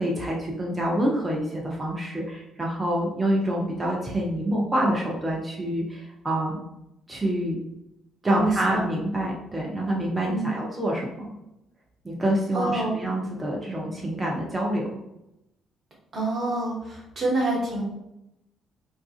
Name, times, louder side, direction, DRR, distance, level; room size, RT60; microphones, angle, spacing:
voice 1, 0.0-6.6 7.1-7.6 8.2-11.3 12.0-14.9, right 1 dB, 20° right, -2 dB, 0.6 m, -27 dB
voice 2, 8.3-8.9 10.3-10.5 12.5-12.9 16.1-17.8, right 2 dB, 50° right, -3 dB, 1.0 m, -27 dB
2.5 x 2.3 x 2.4 m, 0.87 s
figure-of-eight pair, 45°, 0 cm